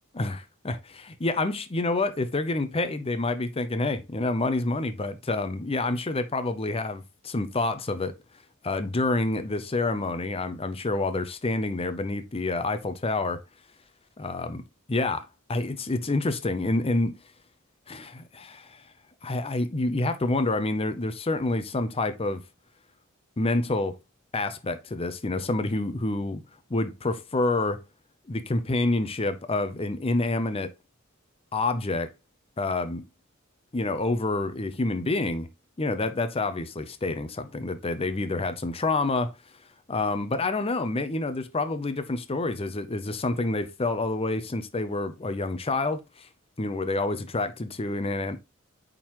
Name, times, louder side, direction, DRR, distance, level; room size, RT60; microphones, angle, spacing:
voice 1, 0.1-8.2 8.6-13.4 14.2-14.6 14.9-17.1 17.9-18.8 19.2-22.4 23.4-24.0 24.3-26.4 26.7-27.8 28.3-30.7 31.5-32.1 32.6-33.0 33.7-35.5 35.8-39.3 39.9-46.3 46.6-48.4, left 2 dB, 30° left, 0.7 m, -28 dB
8.7 x 3.8 x 3.0 m
head